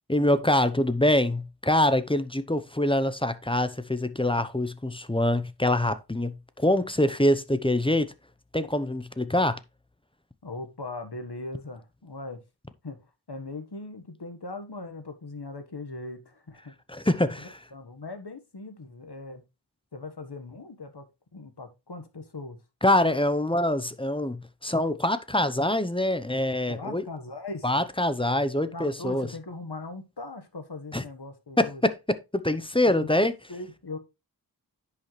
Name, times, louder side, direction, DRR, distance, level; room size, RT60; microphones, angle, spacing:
voice 1, 0.1-8.1 8.5-9.6 16.9-17.6 22.8-27.0 27.6-29.3 30.9-31.0 31.6-33.3, left 1 dB, 15° left, 0.9 m, -25 dB
voice 2, 10.4-12.4 12.8-16.7 17.4-19.4 19.9-22.6 26.7-27.7 28.7-31.8 32.9-34.0, left 2 dB, 70° left, 1.6 m, -40 dB
10.0 x 5.8 x 3.3 m
wide cardioid pair, 40°, 41 cm